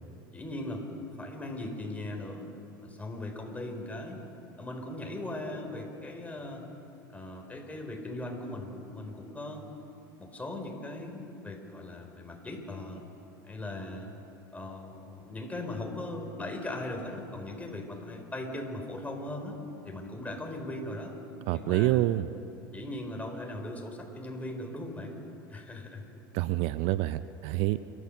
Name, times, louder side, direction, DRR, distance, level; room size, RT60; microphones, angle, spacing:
voice 1, 0.3-2.5 2.8-4.2 4.6-6.6 7.1-9.8 10.2-13.0 13.4-14.1 14.5-19.6 19.8-21.1 21.5-22.1 22.7-25.2 25.5-26.0, left 1 dB, 10° left, 2 dB, 4.5 m, -39 dB
voice 2, 21.5-22.3 26.3-27.8, right 16 dB, 60° right, 14 dB, 0.6 m, -27 dB
29.5 x 14.0 x 6.6 m, 2.8 s
hypercardioid pair, 80°, 12 cm